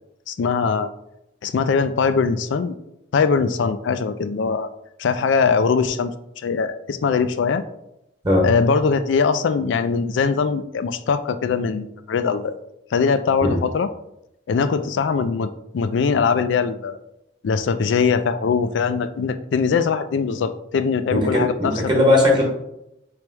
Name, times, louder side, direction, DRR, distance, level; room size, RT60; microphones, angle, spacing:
voice 1, 0.3-0.9 1.4-2.7 3.1-4.7 5.0-6.1 6.4-7.6 8.4-12.5 12.9-13.9 14.5-15.5 15.7-17.0 17.4-21.7, left 5 dB, 70° left, 11 dB, 0.4 m, -21 dB
voice 2, 21.1-22.4, left 1 dB, 25° right, -2 dB, 1.1 m, -18 dB
3.3 x 3.0 x 4.5 m, 0.82 s
head